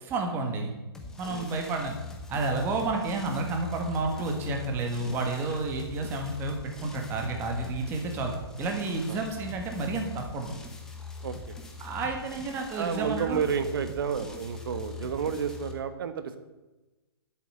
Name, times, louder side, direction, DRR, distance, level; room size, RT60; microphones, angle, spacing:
voice 1, 0.1-0.7 1.2-2.0 2.3-8.3 8.6-10.5 11.8-13.4, right 3 dB, 15° right, 3 dB, 1.7 m, -30 dB
sound 1, 0.9-15.7, left 4 dB, 5° left, 1.3 m, -43 dB
voice 2, 1.2-1.6 9.1-9.2 11.2-11.6 12.7-16.4, right 6 dB, 55° right, 10 dB, 1.5 m, -31 dB
11.0 x 8.2 x 7.9 m, 1.1 s
hypercardioid pair, 160°, 14 cm